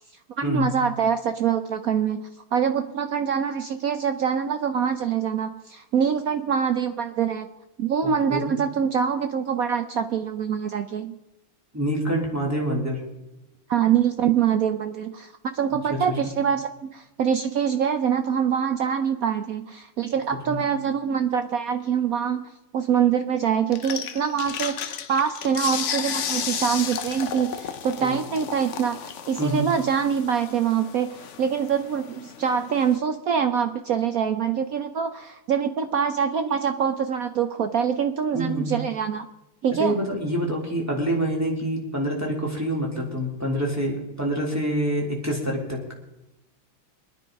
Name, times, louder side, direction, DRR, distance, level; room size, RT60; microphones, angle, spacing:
voice 1, 0.4-7.5 7.8-11.2 13.7-39.3 39.6-39.9, right 7 dB, 75° right, 8 dB, 0.8 m, -24 dB
voice 2, 8.0-8.5 11.7-13.0 15.9-16.3 20.5-20.6 28.0-28.2 29.4-29.7 38.3-38.7 39.8-45.8, right 1 dB, 5° right, -2 dB, 3.2 m, -26 dB
sound 1, 23.7-33.0, left 8 dB, 70° left, 0.7 m, -33 dB
23.5 x 9.9 x 5.2 m, 0.94 s
omnidirectional pair, 2.3 m